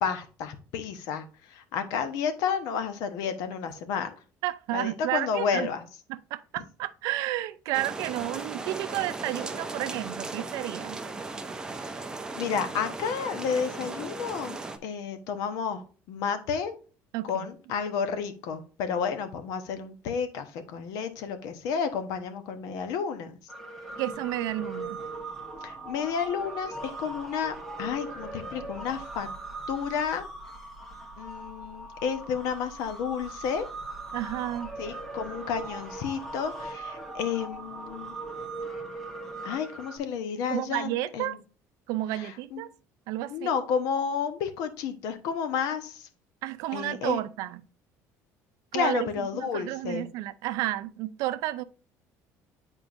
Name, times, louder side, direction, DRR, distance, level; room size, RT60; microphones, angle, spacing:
voice 1, 0.0-4.1 4.7-5.8 11.8-11.9 12.3-16.7 17.2-23.4 25.6-29.3 29.7-30.2 31.2-33.7 34.8-38.1 39.4-41.4 42.1-42.6 43.3-46.1 46.7-47.2 48.7-50.1, left 6 dB, 75° left, 1.0 m, -31 dB
voice 2, 4.4-5.7 6.1-11.0 17.1-17.5 24.0-25.0 34.1-34.7 40.5-41.4 41.9-42.7 43.1-43.5 46.4-47.6 48.7-51.6, right 15 dB, 75° right, 0.5 m, -31 dB
sound 1, 7.7-14.8, right 3 dB, 10° right, 0.6 m, -37 dB
sound 2, 23.5-40.0, right 2 dB, 5° left, 1.1 m, -40 dB
8.9 x 4.4 x 2.6 m
cardioid pair, 150°, 6 cm